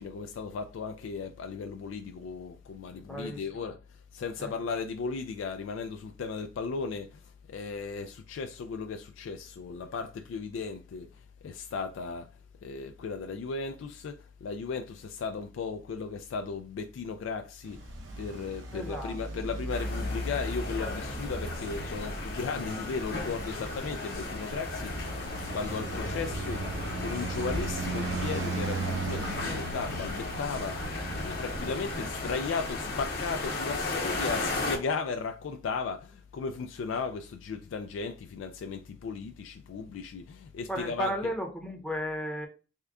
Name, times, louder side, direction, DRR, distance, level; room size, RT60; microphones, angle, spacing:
voice 1, 0.0-12.3 12.6-41.1, left 5 dB, 80° left, 0.3 m, -36 dB
voice 2, 3.0-3.6 4.4-4.6 18.7-19.4 29.4-29.7 31.5-31.7 40.7-42.5, equal, 5° left, 0.7 m, -35 dB
Traffic noise roadway noise, 17.6-33.1, right 2 dB, 70° right, 0.7 m, -37 dB
sound 1, 19.7-34.8, left 2 dB, 55° left, 0.8 m, -35 dB
3.6 x 2.2 x 3.5 m
head